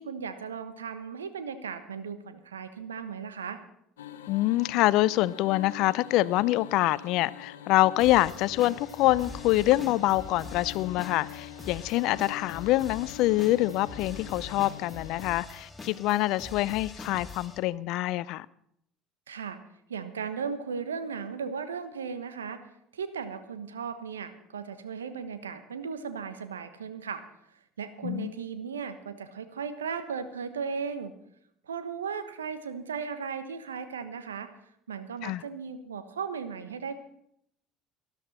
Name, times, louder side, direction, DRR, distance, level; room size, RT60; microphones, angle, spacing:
voice 1, 0.0-3.6 19.3-19.6 19.9-22.6 22.9-27.2 27.8-31.1 31.7-34.5 34.9-37.0, right 6 dB, 85° right, 1.2 m, -36 dB
sound 1, 4.0-15.4, left 12 dB, 80° left, 0.8 m, -45 dB
voice 2, 4.3-18.5 28.0-28.3 35.2-35.4, left 17 dB, 60° left, 0.5 m, -25 dB
sound 2, 8.0-17.6, left 3 dB, 15° left, 3.0 m, -44 dB
19.5 x 11.5 x 4.3 m
hypercardioid pair, 65°, 0 cm